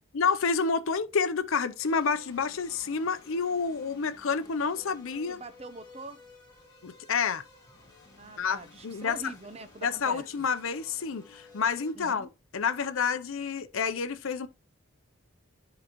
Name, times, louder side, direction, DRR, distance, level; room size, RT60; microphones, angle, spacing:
voice 1, 0.1-5.4 6.8-7.4 8.4-9.3 9.8-14.5, left 5 dB, 75° left, 0.6 m, -29 dB
sound 1, 1.8-11.9, left 3 dB, 20° left, 2.2 m, -55 dB
voice 2, 5.3-6.2 8.2-10.2 11.9-12.3, right 2 dB, 30° right, 0.6 m, -43 dB
11.0 x 3.8 x 3.0 m
head